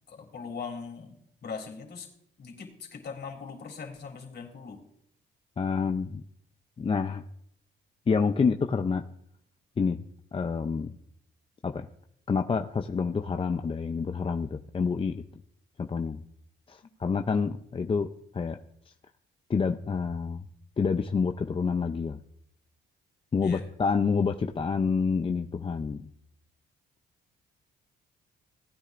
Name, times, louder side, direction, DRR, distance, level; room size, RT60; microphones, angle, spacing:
voice 1, 0.1-1.1 1.4-2.1 2.4-4.8 23.4-23.6, left 5 dB, 60° left, 2 dB, 3.2 m, -40 dB
voice 2, 5.6-6.2 6.8-7.2 8.1-9.0 9.8-10.0 10.3-10.9 11.6-11.9 12.3-15.2 15.8-16.2 16.7-18.1 18.3-18.6 19.5-20.4 20.8-22.2 23.3-26.1, left 5 dB, 25° left, 6 dB, 0.6 m, -28 dB
18.0 x 9.8 x 2.6 m, 0.70 s
cardioid pair, 90°, 20 cm